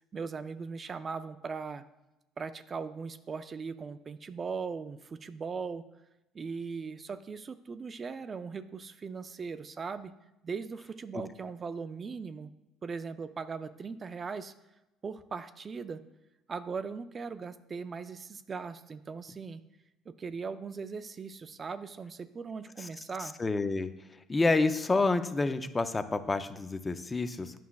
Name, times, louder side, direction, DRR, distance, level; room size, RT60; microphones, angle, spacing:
voice 1, 0.1-1.8 2.4-5.8 6.3-10.1 10.4-12.5 12.8-14.5 15.0-16.0 16.5-19.6 20.1-23.4, right 5 dB, 35° right, 12 dB, 0.4 m, -39 dB
voice 2, 23.4-23.9 24.3-27.5, left 3 dB, 25° left, 10 dB, 0.5 m, -28 dB
9.3 x 5.7 x 2.3 m, 0.96 s
supercardioid pair, 75°, 0 cm